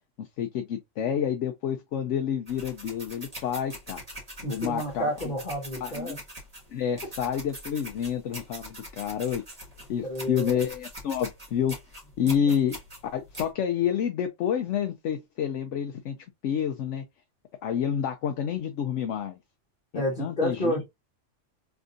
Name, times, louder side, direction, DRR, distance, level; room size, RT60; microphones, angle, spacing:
voice 1, 0.2-4.0 4.5-5.1 5.8-6.2 6.7-9.4 9.9-11.8 12.2-12.8 13.1-16.2 16.4-17.0 17.6-19.4 19.9-20.8, left 8 dB, 70° left, 0.9 m, -29 dB
sound 1, 2.5-13.5, right 1 dB, 30° right, 1.9 m, -43 dB
voice 2, 4.4-6.2 10.0-10.5 12.2-12.4 19.9-20.8, equal, 40° left, 1.6 m, -30 dB
3.7 x 3.4 x 2.5 m
omnidirectional pair, 1.3 m